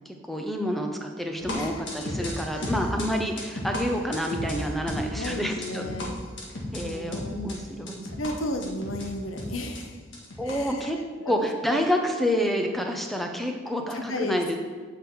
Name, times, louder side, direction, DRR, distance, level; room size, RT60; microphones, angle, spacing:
voice 1, 0.1-5.8 6.7-8.0 10.4-11.0 11.3-14.6, equal, ahead, 3 dB, 0.6 m, -28 dB
Grayscale Rainbow, 1.4-10.7, left 1 dB, 65° left, 1.5 m, -34 dB
voice 2, 5.1-6.1 6.8-7.6 8.1-9.9 10.4-10.9 11.2-11.4 13.9-14.4, left 1 dB, 90° left, 5 dB, 0.9 m, -34 dB
8.0 x 5.0 x 4.6 m, 1.5 s
head